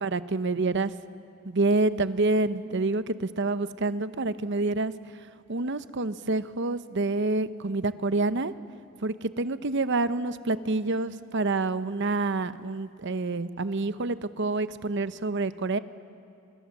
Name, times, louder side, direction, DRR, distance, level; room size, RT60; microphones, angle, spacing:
voice 1, 0.0-0.9 1.4-4.9 5.5-8.5 9.0-15.8, right 3 dB, 60° right, 13 dB, 0.8 m, -27 dB
29.0 x 25.0 x 7.3 m, 2.6 s
head